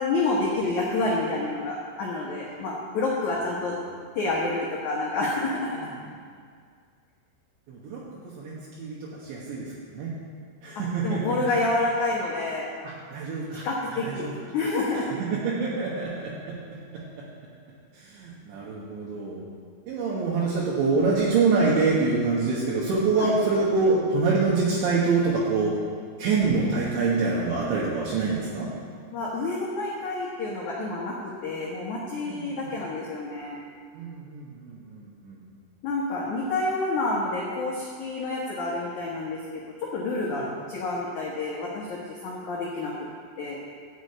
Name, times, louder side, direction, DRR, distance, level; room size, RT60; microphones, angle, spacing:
voice 1, 0.0-3.8 4.2-5.8 10.8-12.7 13.6-14.3 14.5-15.1 23.2-23.3 29.1-33.6 35.8-42.9 43.4-43.6, left 2 dB, 65° left, -5 dB, 1.9 m, -28 dB
voice 2, 7.7-8.0 8.4-8.5 8.8-10.1 10.6-11.2 12.8-13.6 14.0-14.3 15.3-16.5 17.9-19.4 19.9-25.8 26.2-28.7 32.3-32.7 33.9-35.4 40.3-40.5, right 4 dB, 70° right, -6 dB, 3.5 m, -25 dB
13.0 x 6.3 x 8.6 m, 2.1 s
omnidirectional pair, 5.6 m